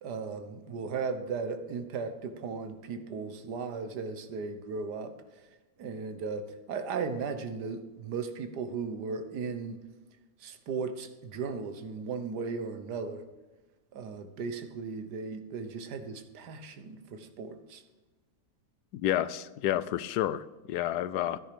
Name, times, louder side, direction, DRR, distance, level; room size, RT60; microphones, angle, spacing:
voice 1, 0.0-5.1 5.8-9.8 10.4-13.2 13.9-17.8, right 5 dB, 90° right, 9 dB, 1.7 m, -36 dB
voice 2, 18.9-21.4, left 12 dB, 80° left, 17 dB, 1.2 m, -30 dB
13.0 x 10.0 x 5.0 m, 1.2 s
omnidirectional pair, 1.7 m